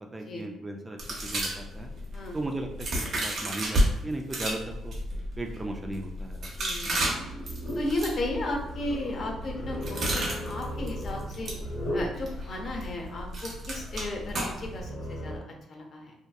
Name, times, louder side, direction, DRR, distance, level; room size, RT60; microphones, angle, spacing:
voice 1, 0.1-1.9 2.3-4.9 5.4-6.5 6.8-7.0, right 2 dB, 20° right, 3 dB, 0.3 m, -36 dB
sound 1, 1.0-3.9 4.3-14.8, right 1 dB, 60° right, 0.7 m, -33 dB
voice 2, 6.6-7.2 7.7-11.5 11.9-15.4 15.7-16.1, left 1 dB, 50° left, 1 dB, 0.6 m, -35 dB
sound 2, 6.9-15.4, equal, 75° left, 1.3 m, -38 dB
2.7 x 2.2 x 2.2 m, 0.85 s
cardioid pair, 90°, 0 cm